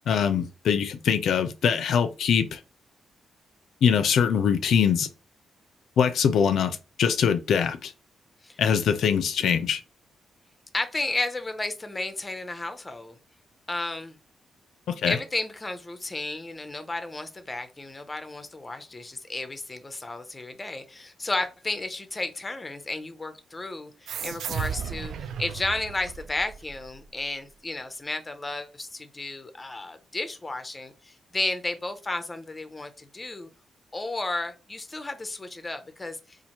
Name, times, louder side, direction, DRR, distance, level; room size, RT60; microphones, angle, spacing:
voice 1, 0.1-2.6 3.8-5.1 6.0-7.9 8.6-9.8 14.9-15.2, left 7 dB, 75° left, 0.4 m, -23 dB
voice 2, 10.7-13.2 13.7-14.2 15.1-25.1 25.4-33.5 33.9-36.4, left 2 dB, 15° left, 0.5 m, -33 dB
sound 1, 24.1-27.1, right 7 dB, 75° right, 0.4 m, -35 dB
4.2 x 2.5 x 2.8 m
wide cardioid pair, 140°, 0 cm